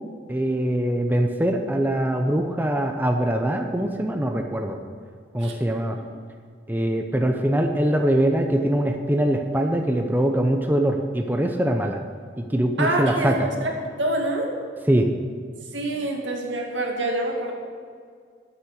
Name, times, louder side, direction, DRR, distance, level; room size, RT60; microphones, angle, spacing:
voice 1, 0.3-4.8 5.3-6.0 6.7-12.0 12.4-13.5 14.9-15.1, right 1 dB, 10° right, 4 dB, 0.7 m, -22 dB
voice 2, 12.8-13.7 14.0-14.6 15.7-17.5, right 1 dB, 90° right, 0 dB, 2.1 m, -26 dB
12.0 x 8.2 x 6.4 m, 2.1 s
head